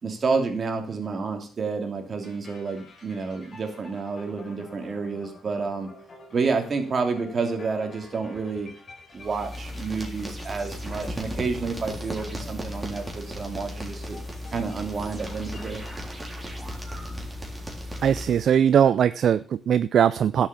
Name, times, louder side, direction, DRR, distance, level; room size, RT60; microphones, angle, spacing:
voice 1, 0.0-5.9 6.3-8.7 9.1-14.2 14.5-15.8, right 4 dB, 40° right, 4 dB, 3.0 m, -29 dB
sound 1, 2.2-16.0, left 3 dB, 45° left, 4.6 m, -50 dB
sound 2, 9.2-18.6, equal, 15° right, 3.7 m, -36 dB
voice 2, 18.0-20.5, right 8 dB, 60° right, 15 dB, 0.4 m, -20 dB
11.0 x 7.6 x 7.1 m, 0.41 s
cardioid pair, 90°, 0 cm